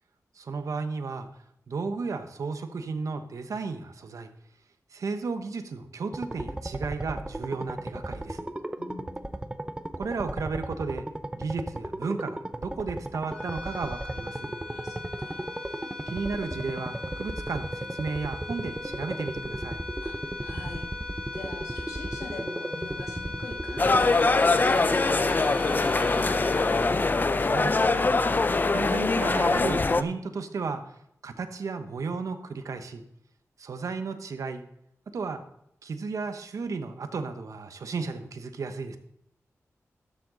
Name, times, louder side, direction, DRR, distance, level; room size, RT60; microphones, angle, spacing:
voice 1, 0.4-1.3 1.7-4.3 4.9-8.4 10.0-11.0 11.3-14.5 16.1-19.8 27.4-28.1 28.7-30.9 31.2-33.0 33.6-34.6 35.1-35.4 35.8-39.0, right 4 dB, 75° right, 8 dB, 1.0 m, -34 dB
sound 1, 6.1-24.1, right 1 dB, 15° right, 0.7 m, -36 dB
voice 2, 8.8-9.2 14.6-15.5 20.0-20.9 21.3-26.8, left 3 dB, 80° left, 0 dB, 2.4 m, -43 dB
sound 2, 13.2-27.8, left 2 dB, 15° left, 4.1 m, -39 dB
sound 3, 23.8-30.0, left 3 dB, 35° left, 0.5 m, -23 dB
12.5 x 7.4 x 3.9 m, 0.75 s
cardioid pair, 70°, 6 cm